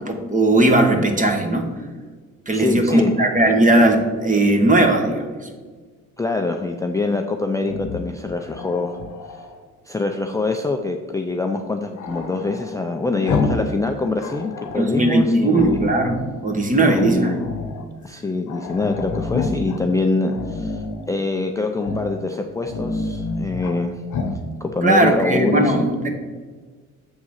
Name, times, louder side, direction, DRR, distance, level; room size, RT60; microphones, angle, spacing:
voice 1, 0.0-1.7 2.5-5.5 14.7-17.3 24.8-26.1, right 2 dB, 25° right, 4 dB, 1.2 m, -18 dB
voice 2, 2.5-3.1 6.2-9.0 9.9-15.8 16.8-17.4 18.0-23.9 24.6-25.9, left 3 dB, 10° left, 3 dB, 0.5 m, -24 dB
Growling, 7.6-9.6 12.0-13.7 14.0-14.9 15.5-16.4 16.8-17.8 18.2-18.3 18.5-19.8 20.3-21.1 21.8-22.2 22.5-23.8 24.1-24.4, left 4 dB, 75° left, 1.0 m, -29 dB
7.2 x 3.7 x 6.5 m, 1.5 s
cardioid pair, 90°, 30 cm